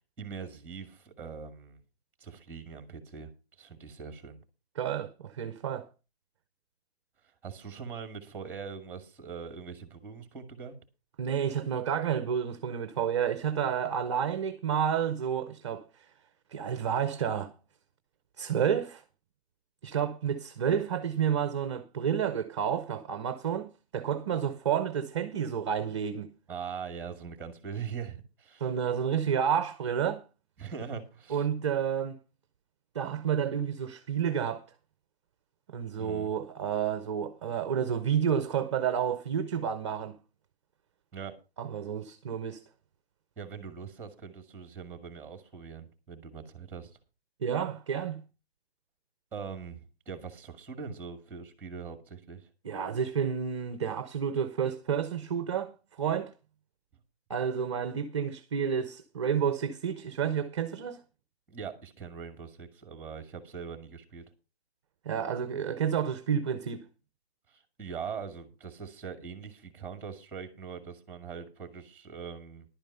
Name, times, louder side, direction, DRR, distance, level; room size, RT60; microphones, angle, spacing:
voice 1, 0.2-1.8 2.2-3.3 3.6-4.4 7.4-10.7 26.5-28.7 30.6-31.5 35.9-36.3 41.1-41.3 43.4-47.0 49.3-52.5 61.5-64.2 67.5-72.7, right 6 dB, 5° right, 2.0 m, -42 dB
voice 2, 4.8-5.9 11.2-16.1 16.5-17.5 18.4-19.0 19.8-26.3 28.6-30.2 31.3-32.2 32.9-34.7 35.7-40.2 41.6-42.6 47.4-48.2 52.6-56.3 57.3-61.0 65.0-66.9, right 8 dB, 30° right, 0.6 m, -30 dB
11.5 x 9.0 x 5.5 m
hypercardioid pair, 160°, 32 cm